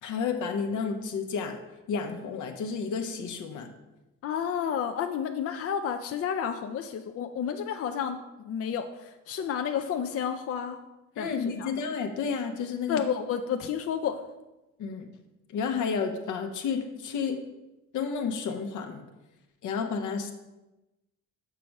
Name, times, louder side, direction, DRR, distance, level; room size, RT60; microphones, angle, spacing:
voice 1, 0.0-1.6 1.9-3.7 11.2-13.0 14.8-15.1 15.5-17.4 17.9-19.0 19.6-20.3, left 5 dB, 80° left, 5 dB, 1.0 m, -31 dB
voice 2, 4.2-10.8 11.2-11.3 11.6-11.7 12.9-14.2, left 8 dB, 50° left, 6 dB, 0.5 m, -31 dB
6.8 x 5.2 x 4.6 m, 1.0 s
cardioid pair, 90°, 30 cm